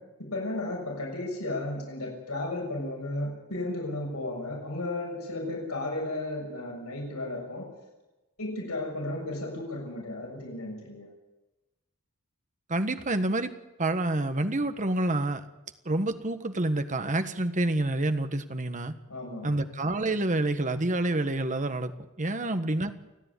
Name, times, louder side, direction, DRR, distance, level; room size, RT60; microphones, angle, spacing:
voice 1, 0.0-7.7 8.4-11.1 19.1-19.6 22.4-22.5, left 2 dB, 80° left, 0 dB, 6.8 m, -34 dB
voice 2, 12.7-13.5 13.8-15.5 15.8-18.9 19.4-21.9 22.2-22.9, right 2 dB, 35° right, 9 dB, 1.5 m, -28 dB
29.5 x 10.0 x 9.8 m, 1.1 s
head